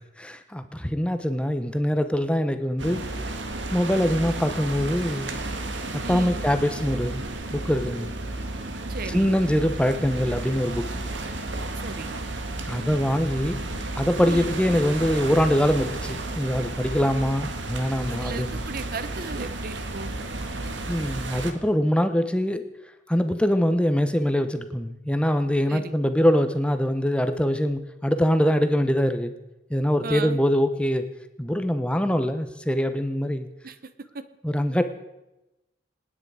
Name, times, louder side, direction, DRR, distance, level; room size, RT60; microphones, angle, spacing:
voice 1, 0.2-3.0 3.7-5.3 5.9-7.2 7.5-8.1 9.1-10.9 12.7-13.6 14.0-18.6 20.9-22.6 23.1-29.3 29.7-31.1 31.4-33.5 34.4-34.8, equal, 5° left, 9 dB, 0.9 m, -23 dB
sound 1, 2.8-21.5, right 2 dB, 70° right, 1.7 m, -32 dB
voice 2, 6.0-6.5 8.9-9.3 11.8-12.2 14.2-14.6 18.1-20.2 25.7-25.9 30.0-30.4 33.6-33.8, right 4 dB, 50° right, 12 dB, 0.8 m, -36 dB
27.5 x 9.7 x 4.9 m, 0.96 s
head